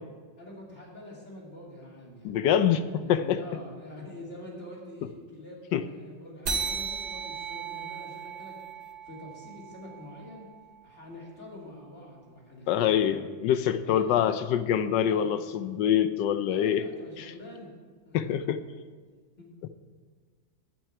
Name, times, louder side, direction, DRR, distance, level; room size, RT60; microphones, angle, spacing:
voice 1, 0.4-2.4 3.0-10.4 10.8-13.0 13.8-15.3 15.8-15.9 16.5-17.7 18.0-18.4 19.4-19.5, left 1 dB, 35° left, -4 dB, 3.0 m, -46 dB
voice 2, 2.2-3.4 5.7-5.9 12.7-16.9 17.2-17.3 18.1-18.6, left 9 dB, 75° left, 12 dB, 1.2 m, -25 dB
sound 1, 6.5-11.4, right 5 dB, 55° right, 2.7 m, -37 dB
12.0 x 6.2 x 8.6 m, 1.5 s
omnidirectional pair, 2.1 m